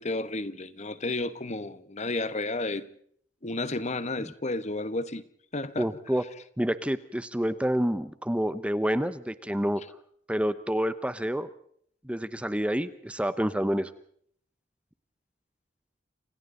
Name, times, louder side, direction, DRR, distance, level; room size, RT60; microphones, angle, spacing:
voice 1, 0.0-2.9 3.4-5.2 5.5-5.9, left 2 dB, 40° left, 1.3 m, -32 dB
voice 2, 5.8-6.2 6.6-9.8 10.3-11.5 12.0-13.9, equal, 5° right, 1.0 m, -28 dB
30.0 x 27.0 x 4.0 m
head